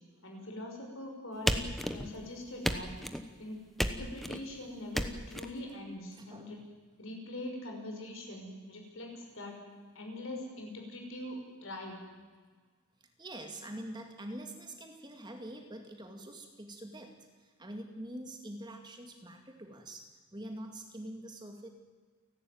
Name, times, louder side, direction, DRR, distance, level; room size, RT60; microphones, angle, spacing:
voice 1, 0.2-2.9 3.4-3.6 3.9-6.6 7.0-9.6 9.9-12.0, left 1 dB, 60° left, 2 dB, 5.9 m, -43 dB
sound 1, 1.5-2.2 2.6-3.3 3.8-4.4 4.9-5.5, equal, ahead, 1.1 m, -33 dB
voice 2, 6.1-6.6 10.4-10.5 13.2-21.7, right 1 dB, 20° right, 4 dB, 2.2 m, -45 dB
29.5 x 12.5 x 9.5 m, 1.5 s
head